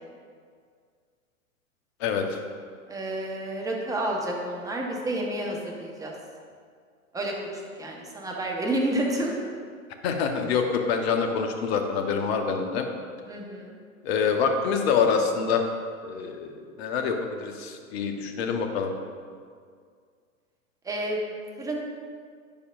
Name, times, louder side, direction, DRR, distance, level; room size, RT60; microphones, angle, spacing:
voice 1, 2.0-2.4 10.0-12.9 14.0-15.6 16.0-18.9, left 6 dB, 45° left, 5 dB, 1.0 m, -26 dB
voice 2, 2.9-6.1 7.1-9.3 13.3-13.8 20.8-21.2 21.6-21.8, right 1 dB, 10° right, -1 dB, 1.0 m, -30 dB
10.0 x 6.9 x 2.5 m, 2.1 s
hypercardioid pair, 105°, 43 cm